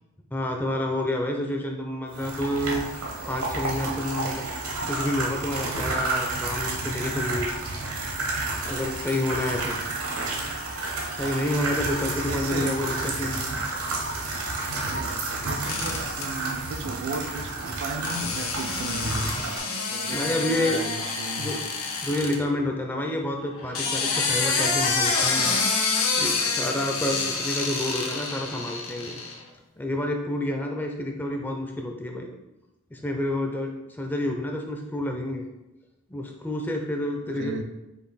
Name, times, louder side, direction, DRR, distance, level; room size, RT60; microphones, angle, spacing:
voice 1, 0.3-2.8 3.3-4.4 4.9-7.5 8.6-9.8 11.1-13.5 20.1-20.8 21.4-21.6 22.0-25.6 26.2-29.2 29.8-32.3 32.9-35.5 36.1-37.6, left 1 dB, 10° left, 2 dB, 0.4 m, -29 dB
sound 1, 2.1-19.6, right 2 dB, 70° right, 0.9 m, -30 dB
voice 2, 11.7-12.8 14.8-19.3 19.9-21.5 37.3-37.6, right 3 dB, 55° right, 6 dB, 0.4 m, -35 dB
sound 2, 15.7-16.3 18.0-22.4 23.6-29.4, left 4 dB, 65° left, 0.7 m, -27 dB
5.1 x 2.5 x 4.0 m, 0.99 s
head